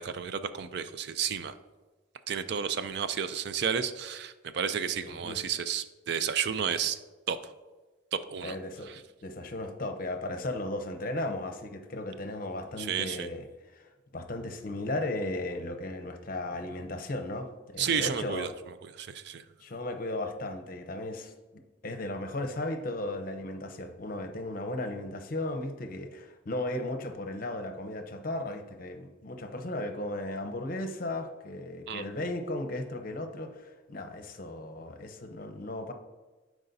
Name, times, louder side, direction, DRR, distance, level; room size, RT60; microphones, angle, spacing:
voice 1, 0.0-1.5 2.3-7.0 7.3-7.5 8.1-8.6 8.9-9.0 12.8-13.3 17.8-19.5 31.9-32.0, right 7 dB, 55° right, 11 dB, 0.4 m, -32 dB
voice 2, 5.0-5.4 8.4-8.9 9.2-13.5 13.7-18.5 19.6-21.3 21.8-35.9, left 1 dB, 45° left, 6 dB, 0.7 m, -36 dB
11.5 x 4.8 x 2.7 m, 1.2 s
head